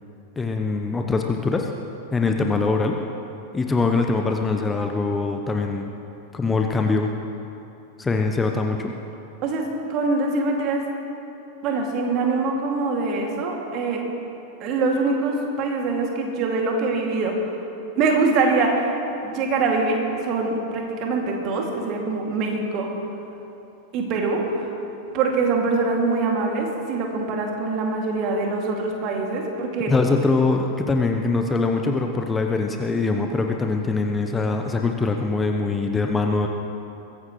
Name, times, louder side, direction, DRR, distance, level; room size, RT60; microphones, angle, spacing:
voice 1, 0.4-1.7 2.1-3.0 3.5-5.9 6.3-7.1 8.0-8.9 29.9-36.5, left 3 dB, 15° left, 3 dB, 0.9 m, -23 dB
voice 2, 9.4-10.9 11.6-14.0 14.6-17.6 18.0-18.9 19.2-22.9 23.9-24.7 25.1-29.9, right 3 dB, 40° right, 0 dB, 2.5 m, -24 dB
22.0 x 15.5 x 3.2 m, 2.9 s
figure-of-eight pair, 90°, 0 cm